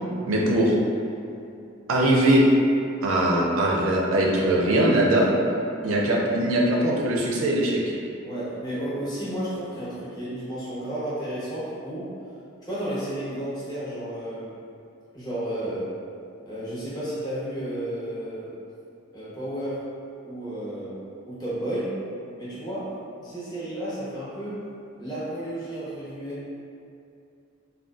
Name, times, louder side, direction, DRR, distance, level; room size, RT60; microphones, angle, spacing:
voice 1, 0.3-0.7 1.9-2.4 3.0-5.4 5.8-7.9, right 1 dB, 85° right, -2 dB, 0.5 m, -21 dB
voice 2, 4.5-5.5 8.2-12.1 12.6-14.6 15.1-15.9 16.5-18.5 19.1-19.8 20.2-21.0 21.2-21.9 22.4-22.9 23.2-24.6 25.0-26.4, right 1 dB, 20° left, -11 dB, 0.8 m, -32 dB
3.7 x 2.3 x 2.4 m, 2.6 s
head